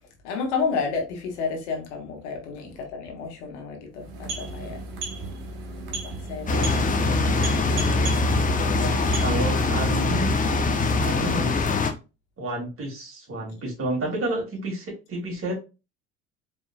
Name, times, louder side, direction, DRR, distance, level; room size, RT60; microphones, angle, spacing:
voice 1, 0.2-4.8 6.0-8.1 8.7-9.4, left 5 dB, 75° left, 1.4 m, -32 dB
sound 1, 3.9-9.7, right 2 dB, 65° right, 1.2 m, -35 dB
sound 2, 6.5-11.9, left 3 dB, 20° left, 0.8 m, -23 dB
voice 2, 9.2-10.3 11.0-11.5 12.4-15.6, right 1 dB, 40° right, 2.3 m, -30 dB
4.3 x 3.5 x 2.3 m
hypercardioid pair, 65°, 35 cm